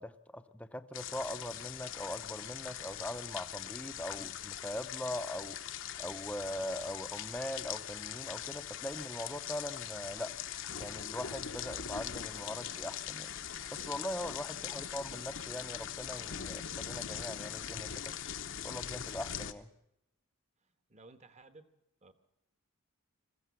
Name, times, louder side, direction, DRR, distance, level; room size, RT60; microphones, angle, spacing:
voice 1, 0.0-5.6 6.0-10.3 10.8-13.3 13.7-17.9 18.6-19.7, left 1 dB, 5° left, 11 dB, 0.7 m, -41 dB
sound 1, 0.9-19.5, left 9 dB, 60° left, 0.8 m, -41 dB
voice 2, 14.6-15.0 20.6-21.7 22.0-22.1, right 2 dB, 30° right, 10 dB, 1.2 m, -58 dB
21.0 x 15.0 x 8.3 m, 0.86 s
head